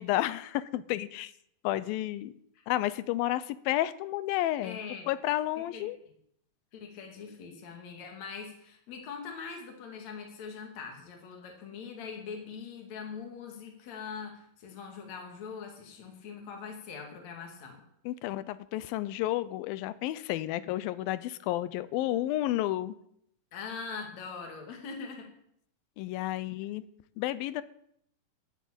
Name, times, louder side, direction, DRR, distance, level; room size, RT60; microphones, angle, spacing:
voice 1, 0.0-1.3 1.6-2.3 2.7-4.8 5.1-6.0 18.1-23.0 26.0-26.8 27.2-27.6, left 14 dB, 85° left, 16 dB, 2.5 m, -31 dB
voice 2, 4.6-5.1 5.7-5.9 6.7-17.8 23.5-25.3, left 5 dB, 55° left, 2 dB, 3.4 m, -42 dB
13.5 x 8.0 x 8.6 m, 0.71 s
omnidirectional pair, 4.1 m